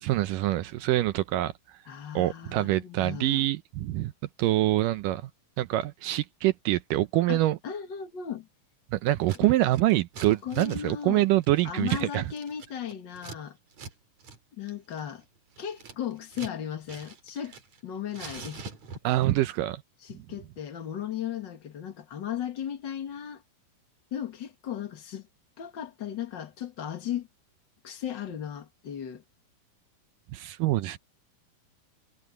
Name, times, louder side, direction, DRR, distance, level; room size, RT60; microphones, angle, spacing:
voice 1, 0.0-1.5 2.2-4.1 4.4-5.2 5.6-7.6 8.9-12.2 19.0-19.8 30.3-31.0, right 16 dB, 80° right, 2.1 m, -25 dB
voice 2, 1.9-3.5 7.3-8.5 9.4-9.5 10.4-11.2 11.6-13.6 14.5-15.2 15.6-17.6 17.8-18.6 20.0-23.4 24.1-25.3 25.6-27.3 27.8-29.2, left 9 dB, 40° left, 1.8 m, -36 dB
Scissors, 9.1-9.4 9.7-13.4 13.7-13.9 14.2-14.4 14.7-16.6 16.9-17.8 18.1-19.2, right 4 dB, 50° right, 4.0 m, -45 dB
omnidirectional pair, 4.2 m